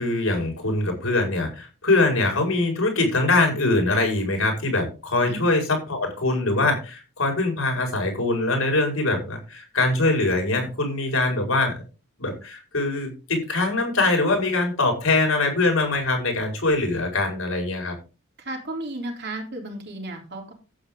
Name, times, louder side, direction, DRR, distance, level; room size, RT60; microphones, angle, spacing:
voice 1, 0.0-11.8 12.2-17.9, left 2 dB, 80° left, 2 dB, 5.2 m, -23 dB
voice 2, 18.4-20.5, right 1 dB, 50° right, 1 dB, 3.6 m, -33 dB
12.0 x 9.2 x 3.8 m, 0.32 s
head